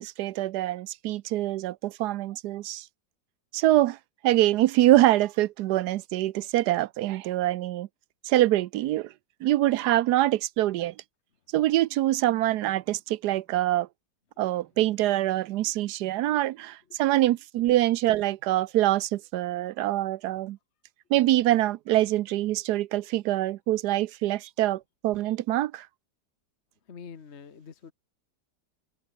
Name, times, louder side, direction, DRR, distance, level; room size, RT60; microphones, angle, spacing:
voice 1, 0.0-2.8 3.5-4.0 4.2-7.9 8.2-9.1 9.4-10.9 11.5-13.9 14.4-20.6 21.1-25.9, right 15 dB, 75° right, 1.1 m, -24 dB
voice 2, 26.9-27.9, left 6 dB, 40° left, 1.5 m, -45 dB
omnidirectional pair, 1.8 m